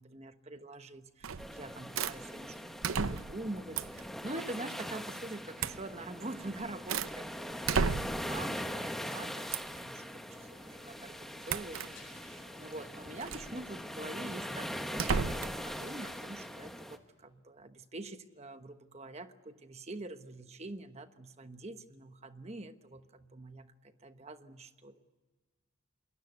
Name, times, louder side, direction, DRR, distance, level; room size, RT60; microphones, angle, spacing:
voice 1, 0.0-25.1, right 2 dB, 30° right, 9 dB, 1.1 m, -45 dB
sound 1, 1.2-1.6 2.0-2.2 2.8-3.4 3.7-4.1 5.6-5.8 6.4-7.2 7.7-8.3 9.5-9.8 11.5-11.9 13.2-13.5 14.9-15.6, right 5 dB, 85° right, 0.7 m, -33 dB
sound 2, 1.4-17.0, equal, ahead, 1.3 m, -42 dB
sound 3, 10.3-16.2, left 2 dB, 65° left, 5.1 m, -59 dB
28.0 x 22.0 x 8.1 m, 1.3 s
head